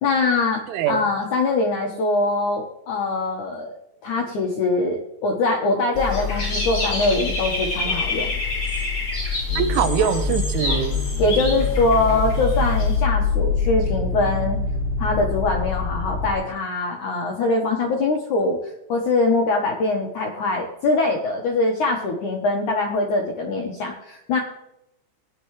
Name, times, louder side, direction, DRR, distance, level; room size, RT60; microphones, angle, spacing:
voice 1, 0.0-3.8 4.0-8.3 11.2-14.6 15.0-24.4, left 3 dB, 70° left, 1 dB, 1.8 m, -23 dB
voice 2, 0.7-1.0 9.6-11.1, right 9 dB, 90° right, 9 dB, 3.5 m, -23 dB
Dog / Bird, 6.0-13.0, left 3 dB, 35° left, 6.1 m, -27 dB
sound 1, 9.5-16.3, left 5 dB, 55° left, 5.0 m, -25 dB
18.0 x 11.0 x 3.2 m, 0.84 s
omnidirectional pair, 5.5 m